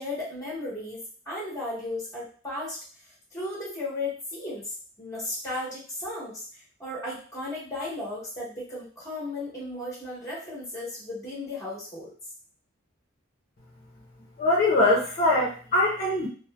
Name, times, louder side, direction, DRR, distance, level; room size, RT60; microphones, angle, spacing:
voice 1, 0.0-2.8 3.3-12.1, left 2 dB, 15° left, -6 dB, 1.1 m, -35 dB
voice 2, 14.4-16.3, left 2 dB, 45° left, -6 dB, 0.6 m, -22 dB
3.0 x 2.0 x 2.2 m, 0.41 s
head